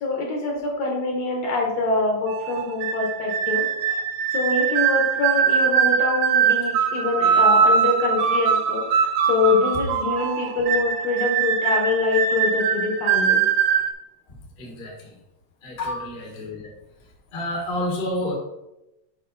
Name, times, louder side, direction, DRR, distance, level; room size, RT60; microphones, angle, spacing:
voice 1, 0.0-4.0 4.3-13.5 15.8-16.0, left 3 dB, 60° left, 0 dB, 2.0 m, -25 dB
sound 1, 2.3-13.9, right 7 dB, 75° right, 1.8 m, -21 dB
voice 2, 14.3-15.1 15.6-16.7 17.3-18.3, left 1 dB, 30° left, -2 dB, 1.0 m, -30 dB
7.8 x 5.1 x 3.9 m, 0.92 s
omnidirectional pair, 3.9 m